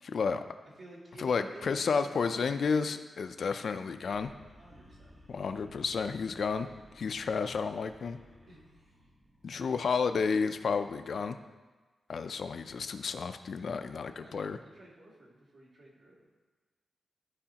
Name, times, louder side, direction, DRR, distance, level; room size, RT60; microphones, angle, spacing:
voice 1, 0.0-0.4 1.2-4.3 5.3-6.7 6.9-8.2 9.4-11.4 12.1-14.6, left 5 dB, 65° left, 9 dB, 0.4 m, -31 dB
voice 2, 0.6-3.0 4.6-5.2 8.5-9.1 9.5-10.0 13.7-16.3, right 1 dB, 65° right, -6 dB, 2.6 m, -53 dB
sound 1, 4.1-10.4, equal, 25° right, 1.1 m, -58 dB
14.0 x 4.9 x 2.9 m, 1.3 s
wide cardioid pair, 110°, 0 cm